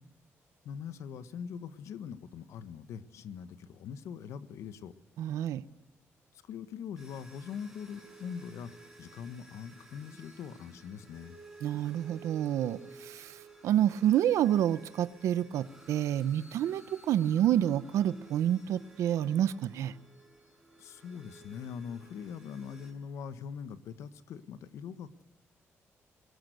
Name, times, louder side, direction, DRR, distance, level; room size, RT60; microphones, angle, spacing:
voice 1, 0.6-4.9 6.3-11.4 20.8-25.2, left 7 dB, 85° left, 13 dB, 1.5 m, -42 dB
voice 2, 5.2-5.6 11.6-19.9, right 11 dB, 90° right, 15 dB, 0.8 m, -28 dB
sound 1, 7.0-22.9, right 3 dB, 5° right, 6.6 m, -54 dB
23.5 x 21.0 x 8.0 m, 0.95 s
cardioid pair, 120°, 5 cm